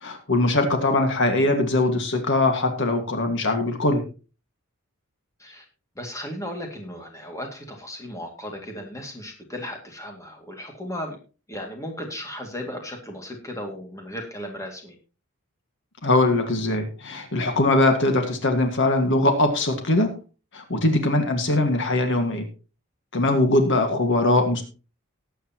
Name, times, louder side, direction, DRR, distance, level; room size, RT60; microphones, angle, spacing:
voice 1, 0.0-4.0 16.0-20.1 20.5-22.4 23.1-24.6, left 2 dB, 55° left, 5 dB, 1.8 m, -21 dB
voice 2, 6.0-11.2 11.5-15.0, equal, 15° left, 2 dB, 2.3 m, -36 dB
19.0 x 8.3 x 3.0 m, 0.34 s
head